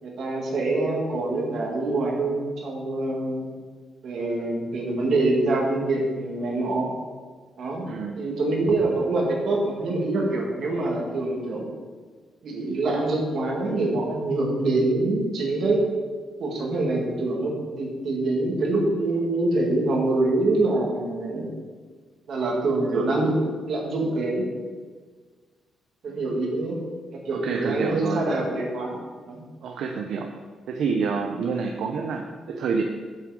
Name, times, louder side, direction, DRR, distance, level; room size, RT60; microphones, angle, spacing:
voice 1, 0.0-3.5 4.0-6.9 7.6-7.9 8.2-11.6 12.4-15.8 16.4-21.5 22.3-23.4 23.7-24.5 26.0-26.8 27.1-29.0 29.3-29.4, right 2 dB, 50° right, -1 dB, 1.8 m, -25 dB
voice 2, 7.9-8.2 27.3-28.2 29.6-30.3 30.7-32.8, right 5 dB, 65° right, 3 dB, 0.6 m, -28 dB
7.6 x 7.5 x 4.9 m, 1.5 s
cardioid pair, 170°, 0 cm